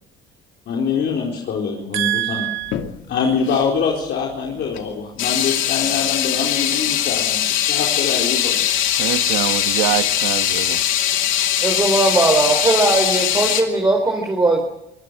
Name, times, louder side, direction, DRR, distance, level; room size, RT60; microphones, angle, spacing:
voice 1, 0.7-2.5 3.1-8.6, left 6 dB, 60° left, -2 dB, 4.3 m, -24 dB
voice 2, 1.9-2.7 9.0-10.8, right 15 dB, 90° right, 10 dB, 1.3 m, -24 dB
sound 1, 2.6-2.9 3.5-3.7 4.7-4.8 5.2-13.6, left 11 dB, 80° left, 2.7 m, -21 dB
voice 3, 11.6-14.6, right 2 dB, 20° right, 1 dB, 4.5 m, -18 dB
24.0 x 18.5 x 6.4 m, 0.86 s
cardioid pair, 100°, 20 cm